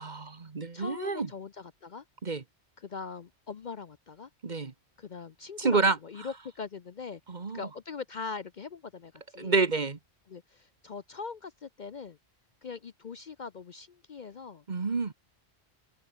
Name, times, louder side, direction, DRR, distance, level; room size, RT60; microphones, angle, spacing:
voice 1, 0.0-1.3 2.2-2.4 4.4-4.7 5.6-6.0 7.3-7.6 9.4-10.0 14.7-15.1, right 4 dB, 45° right, 1.4 m, -28 dB
voice 2, 0.7-2.0 2.8-4.3 5.0-7.2 7.5-9.5 10.3-12.2 12.6-14.6, left 5 dB, 50° left, 0.7 m, -41 dB
open air
omnidirectional pair, 1.1 m